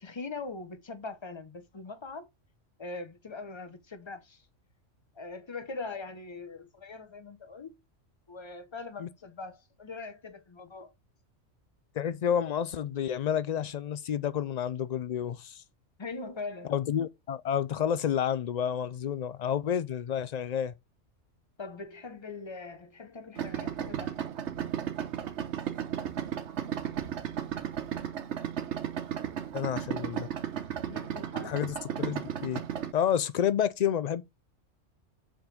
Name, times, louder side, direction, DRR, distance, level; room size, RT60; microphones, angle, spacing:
voice 1, 0.0-2.3 2.8-4.4 5.1-7.8 8.3-10.9 16.0-16.7 21.6-24.3 30.9-31.6, left 3 dB, 25° left, 0.8 m, -41 dB
voice 2, 12.0-15.6 16.7-20.7 29.5-30.3 31.4-32.6 32.9-34.2, left 9 dB, 90° left, 0.3 m, -30 dB
Idling, 23.4-32.9, right 9 dB, 65° right, 1.1 m, -34 dB
7.0 x 3.9 x 5.1 m
omnidirectional pair, 1.3 m